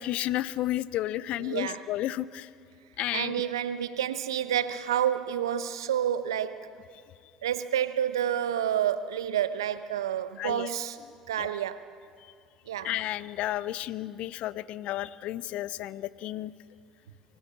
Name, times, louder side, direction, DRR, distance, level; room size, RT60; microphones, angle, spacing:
voice 1, 0.0-2.5 3.0-3.5 10.4-10.7 11.4-11.5 12.8-16.5, left 14 dB, 60° left, 18 dB, 0.5 m, -32 dB
voice 2, 1.4-1.9 3.1-6.7 7.4-11.0 11.3-11.8 12.7-12.9, right 10 dB, 80° right, 12 dB, 0.8 m, -29 dB
24.5 x 16.5 x 7.5 m, 2.4 s
hypercardioid pair, 60°, 2 cm